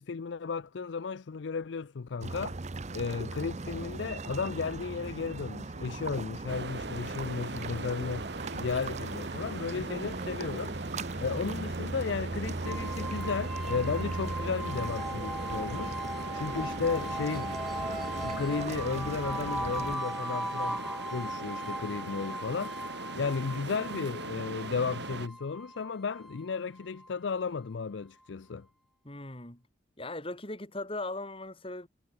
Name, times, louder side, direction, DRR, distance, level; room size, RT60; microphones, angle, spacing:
voice 1, 0.0-2.6 2.9-8.3 8.5-10.7 11.2-17.5 18.2-20.8 21.1-28.7, left 5 dB, 75° left, 0.5 m, -34 dB
sound 1, 2.2-20.0, right 3 dB, 35° right, 0.7 m, -38 dB
sound 2, 6.5-25.3, right 3 dB, 65° right, 2.9 m, -41 dB
sound 3, 12.6-27.5, equal, ahead, 1.1 m, -38 dB
voice 2, 29.0-29.6 30.0-31.9, left 2 dB, 30° left, 4.5 m, -39 dB
head